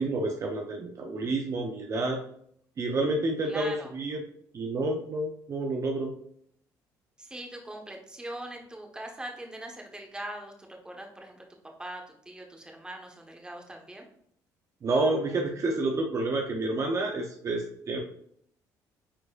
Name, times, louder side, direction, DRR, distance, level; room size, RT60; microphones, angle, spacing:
voice 1, 0.0-2.2 2.8-4.2 4.5-6.1 14.8-18.0, right 2 dB, 45° right, 1 dB, 0.8 m, -29 dB
voice 2, 3.4-3.9 7.2-10.5 10.8-11.4 11.8-14.1, right 1 dB, 10° right, 1 dB, 1.3 m, -41 dB
8.7 x 4.7 x 2.5 m, 0.67 s
cardioid pair, 100°, 7 cm